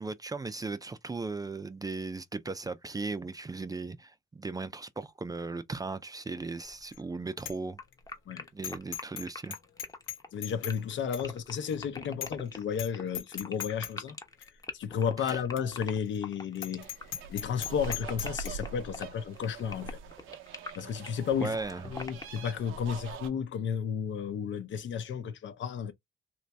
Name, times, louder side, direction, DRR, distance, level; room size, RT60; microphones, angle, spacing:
voice 1, 0.0-7.8 8.5-9.6 15.2-15.4 21.4-22.0, right 3 dB, 20° right, 0.4 m, -37 dB
Bicycle bell, 6.6-7.0 7.4-7.6 7.9-8.0 8.6-9.3 9.5-10.8 11.1-11.2 11.7-11.8 12.2-12.5 12.7-12.9 13.1-13.9 14.4-14.5 15.3-15.4 15.6-15.7 16.1-16.2 16.6-18.5, left 9 dB, 90° left, 1.3 m, -38 dB
sound 1, 7.8-22.4, left 3 dB, 20° left, 0.9 m, -42 dB
voice 2, 10.3-14.5 14.7-16.9 17.3-20.0 20.8-21.6 21.8-25.9, left 7 dB, 70° left, 0.8 m, -33 dB
sound 2, 16.8-23.3, right 4 dB, 90° right, 0.7 m, -43 dB
3.1 x 2.6 x 3.3 m
cardioid pair, 90°, 20 cm